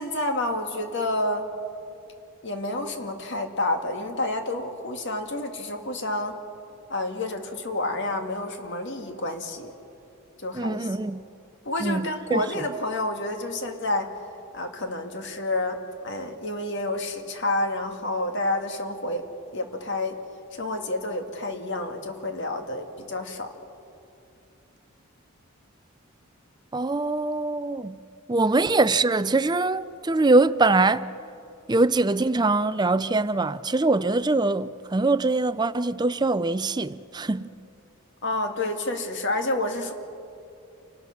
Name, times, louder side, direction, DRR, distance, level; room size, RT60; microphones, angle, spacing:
voice 1, 0.0-1.5 2.4-6.3 6.9-9.7 10.4-10.9 11.7-14.1 14.5-19.3 19.5-20.2 20.5-23.5 28.6-28.7 38.2-39.9, left 2 dB, 55° left, 1.9 m, -29 dB
voice 2, 10.5-11.2 11.8-12.4 26.7-28.0 28.3-31.1 31.7-37.5, right 3 dB, 20° right, 0.4 m, -23 dB
29.0 x 19.5 x 5.9 m
head